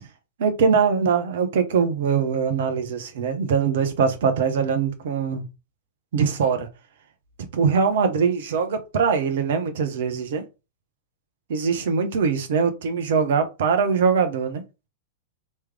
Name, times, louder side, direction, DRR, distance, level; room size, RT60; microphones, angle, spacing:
voice 1, 0.4-5.4 6.1-6.7 7.5-10.4 11.5-14.6, right 6 dB, 60° right, 0.9 m, -22 dB
3.2 x 3.1 x 3.5 m
figure-of-eight pair, 95°, 0 cm